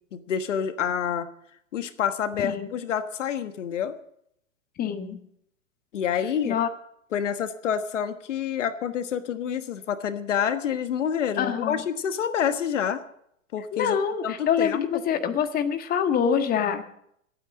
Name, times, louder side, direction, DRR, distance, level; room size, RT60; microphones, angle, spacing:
voice 1, 0.1-1.3 1.7-3.9 5.9-6.6 7.1-13.0 13.5-14.0 14.2-14.8, left 8 dB, 60° left, 10 dB, 1.4 m, -28 dB
voice 2, 2.4-2.7 4.8-5.2 6.4-6.7 11.4-11.8 13.7-16.9, left 8 dB, 20° left, 7 dB, 1.5 m, -25 dB
26.5 x 9.2 x 3.8 m, 0.72 s
figure-of-eight pair, 110°, 40 cm